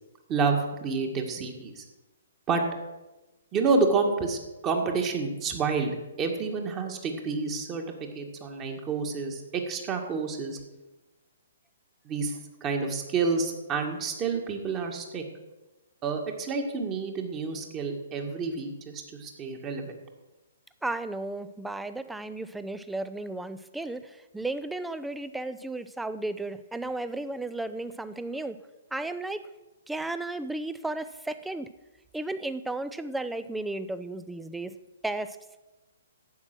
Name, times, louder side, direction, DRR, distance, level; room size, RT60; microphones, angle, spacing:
voice 1, 0.3-1.8 2.5-2.6 3.5-7.8 8.2-10.6 12.1-15.2 16.0-20.0, right 4 dB, 25° right, 3 dB, 2.0 m, -29 dB
voice 2, 20.8-28.6 28.9-29.4 29.9-31.7 32.1-34.7 35.0-35.4, right 2 dB, 5° right, 12 dB, 0.6 m, -34 dB
11.5 x 8.8 x 6.2 m, 1.1 s
figure-of-eight pair, 125°, 0 cm